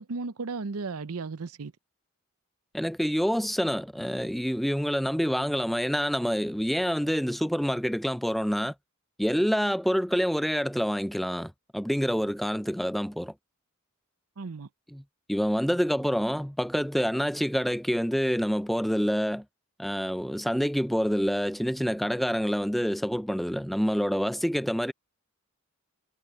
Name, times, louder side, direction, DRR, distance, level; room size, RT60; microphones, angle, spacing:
voice 1, 0.0-1.7 14.4-14.7, right 4 dB, 80° right, 0.7 m, -35 dB
voice 2, 2.7-8.7 9.2-13.3 14.9-15.0 15.3-19.4 19.8-24.9, equal, ahead, 0.4 m, -27 dB
head